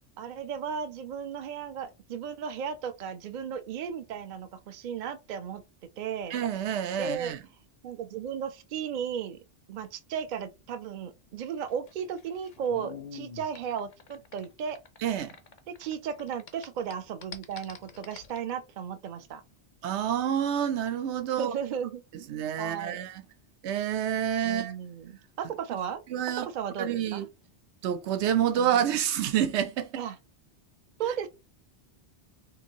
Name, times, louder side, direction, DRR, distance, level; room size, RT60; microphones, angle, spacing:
voice 1, 0.2-5.6 6.0-6.4 7.0-7.4 7.8-9.4 9.7-14.8 15.7-19.4 21.3-22.0 22.6-23.0 24.4-26.0 26.3-27.3 28.6-28.7 30.0-30.2 31.0-31.3, right 7 dB, 55° right, 0.6 m, -35 dB
voice 2, 6.3-7.4 15.0-15.3 19.8-21.5 22.1-23.2 23.6-24.7 26.1-26.5 26.8-27.3 27.8-30.0 31.1-31.2, right 9 dB, 75° right, 0.9 m, -28 dB
sound 1, 11.6-15.9 16.2-18.4, left 6 dB, 50° left, 0.6 m, -46 dB
3.9 x 2.6 x 2.7 m
omnidirectional pair, 1.2 m